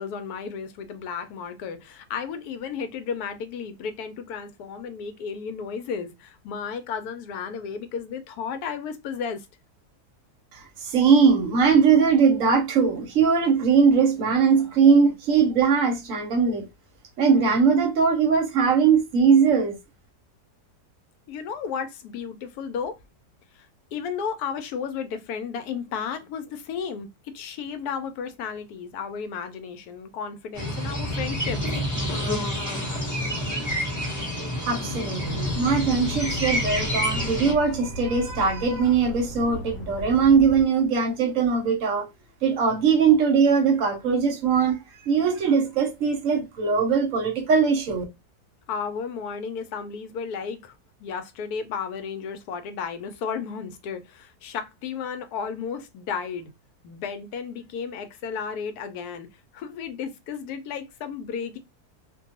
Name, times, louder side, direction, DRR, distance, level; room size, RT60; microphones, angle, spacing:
voice 1, 0.0-9.5 21.3-23.0 23.6-27.1 27.3-31.6 48.7-50.7 51.0-56.5 56.8-59.3 59.5-61.6, left 6 dB, 75° left, 1.1 m, -33 dB
voice 2, 10.5-16.7 17.2-19.8 34.7-42.1 42.4-44.8 45.1-48.0, right 5 dB, 60° right, 1.0 m, -20 dB
sound 1, 30.5-37.5, equal, 15° left, 0.6 m, -28 dB
sound 2, 35.2-40.6, equal, 60° left, 1.1 m, -36 dB
2.6 x 2.2 x 2.7 m
omnidirectional pair, 1.7 m